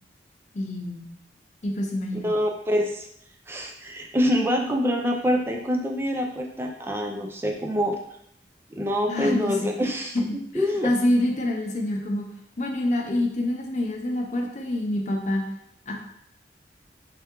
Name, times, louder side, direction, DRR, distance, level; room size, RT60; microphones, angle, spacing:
voice 1, 0.5-1.1 1.6-2.3 9.1-9.7 10.3-12.3 12.6-15.4 15.9-16.0, left 1 dB, 40° left, 1 dB, 0.6 m, -26 dB
voice 2, 2.2-3.1 3.5-8.0 8.7-10.9, equal, 15° right, 1 dB, 0.4 m, -25 dB
3.4 x 3.4 x 2.9 m, 0.73 s
head